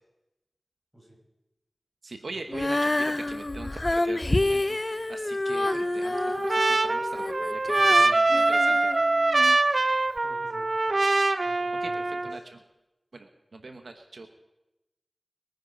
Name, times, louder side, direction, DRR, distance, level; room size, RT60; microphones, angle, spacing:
voice 1, 2.0-9.1 11.8-12.6 13.1-14.3, right 3 dB, 90° right, 5 dB, 1.1 m, -42 dB
Female singing, 2.5-9.6 10.2-10.3, left 2 dB, 40° left, 0.4 m, -28 dB
Trumpet, 5.7-12.4, right 2 dB, 65° right, 0.6 m, -24 dB
voice 2, 7.7-8.0 10.2-11.0 11.4-11.9, right 1 dB, 15° right, -1 dB, 5.5 m, -50 dB
22.0 x 9.3 x 5.1 m, 0.97 s
wide cardioid pair, 50°, 0 cm